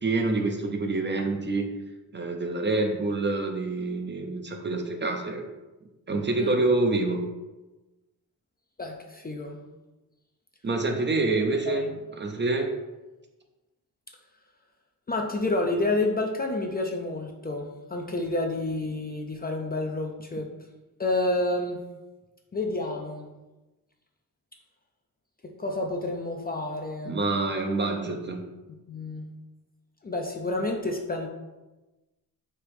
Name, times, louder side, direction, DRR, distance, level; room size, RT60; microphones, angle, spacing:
voice 1, 0.0-1.8 2.1-5.4 6.1-7.2 10.6-11.9 12.2-12.7 27.1-28.5, right 2 dB, 30° right, 4 dB, 0.5 m, -27 dB
voice 2, 8.8-9.6 11.3-11.4 11.7-12.0 15.1-20.5 21.0-21.8 22.5-23.3 25.6-27.2 28.9-29.3 30.0-31.3, left 2 dB, 25° left, 2 dB, 0.4 m, -29 dB
3.3 x 3.0 x 4.6 m, 1.1 s
wide cardioid pair, 120°, 37 cm